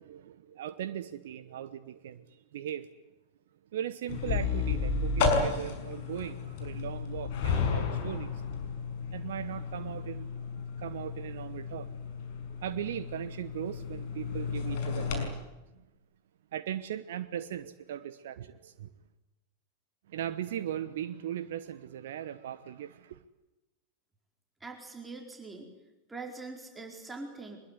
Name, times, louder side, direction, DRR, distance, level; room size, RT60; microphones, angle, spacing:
voice 1, 0.0-2.9 3.7-8.3 9.1-10.3 10.8-11.9 12.6-15.3 16.5-18.9 20.1-23.2, right 10 dB, 60° right, 1.1 m, -38 dB
sound 1, 4.1-15.3, left 5 dB, 50° left, 6.0 m, -33 dB
voice 2, 24.6-25.7 26.1-27.6, right 3 dB, 10° right, 4.5 m, -43 dB
24.5 x 21.0 x 9.7 m
figure-of-eight pair, 90°, 0 cm